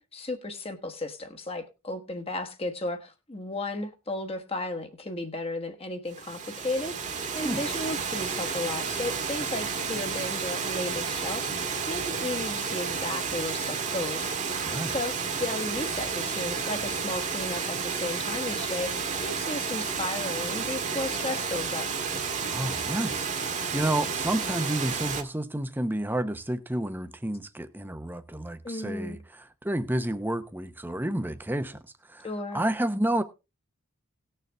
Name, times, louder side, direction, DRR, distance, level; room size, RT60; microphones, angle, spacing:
voice 1, 0.0-14.3 14.8-21.9 28.6-29.2 32.2-32.6, left 2 dB, 25° left, 1.3 m, -34 dB
Water, 6.1-25.2, right 5 dB, 35° right, 1.4 m, -31 dB
voice 2, 22.5-29.2 29.6-31.8 32.1-32.3 32.5-33.2, right 1 dB, 10° right, 0.8 m, -30 dB
18.5 x 6.7 x 3.4 m
head